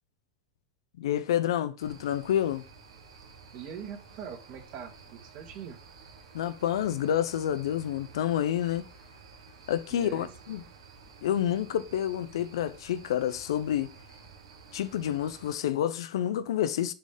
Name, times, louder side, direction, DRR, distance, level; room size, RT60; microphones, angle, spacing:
voice 1, 1.0-2.7 6.3-8.9 9.7-10.6 11.2-13.9 14.7-16.9, left 10 dB, 75° left, 0.7 m, -29 dB
sound 1, 1.8-15.5, right 5 dB, 80° right, 2.1 m, -52 dB
voice 2, 3.5-5.8 9.9-10.3, right 7 dB, 55° right, 2.5 m, -42 dB
7.0 x 5.3 x 3.6 m
hypercardioid pair, 100°, 3 cm